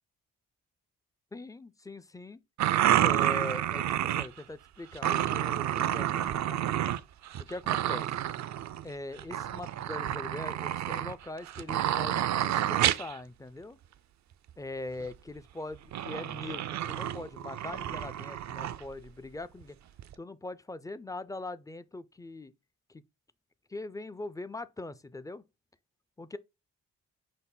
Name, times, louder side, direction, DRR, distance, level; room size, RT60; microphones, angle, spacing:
voice 1, 1.3-2.4 2.9-6.6 7.4-8.1 8.8-13.8 14.6-19.8 20.2-22.5 22.9-23.0 23.7-25.4 26.2-26.4, left 2 dB, 10° left, 0.4 m, -41 dB
sound 1, 2.6-4.4 4.9-7.0 7.3-8.8 9.2-13.1 15.0-15.1 15.9-18.8 19.6-19.7 20.0-20.1, right 11 dB, 55° right, 0.4 m, -29 dB
5.3 x 2.0 x 4.0 m
supercardioid pair, 55°, 34 cm